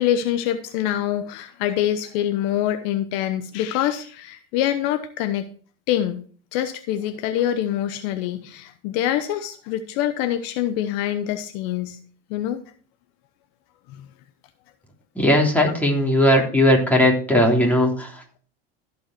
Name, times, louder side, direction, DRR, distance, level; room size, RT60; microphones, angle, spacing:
voice 1, 0.0-5.5 5.9-6.2 6.5-12.0 12.3-12.6 13.9-14.1, left 11 dB, 65° left, 10 dB, 1.0 m, -25 dB
voice 2, 15.1-18.1, left 1 dB, 5° left, -1 dB, 3.4 m, -18 dB
15.5 x 5.5 x 4.6 m, 0.43 s
supercardioid pair, 105°, 31 cm